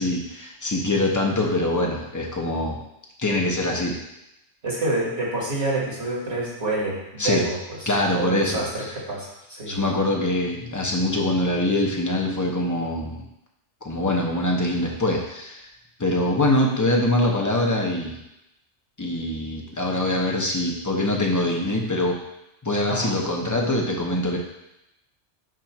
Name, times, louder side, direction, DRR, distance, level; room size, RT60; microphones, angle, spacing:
voice 1, 0.0-2.8 3.2-3.9 7.2-7.4 7.9-8.6 9.7-13.2 13.8-15.7 16.0-18.1 19.0-22.2 22.6-24.4, left 1 dB, 20° left, -1 dB, 0.7 m, -23 dB
voice 2, 4.6-7.6 8.1-9.8 22.9-23.2, right 2 dB, 65° right, -6 dB, 2.2 m, -27 dB
7.5 x 2.6 x 5.8 m, 0.88 s
omnidirectional pair, 1.2 m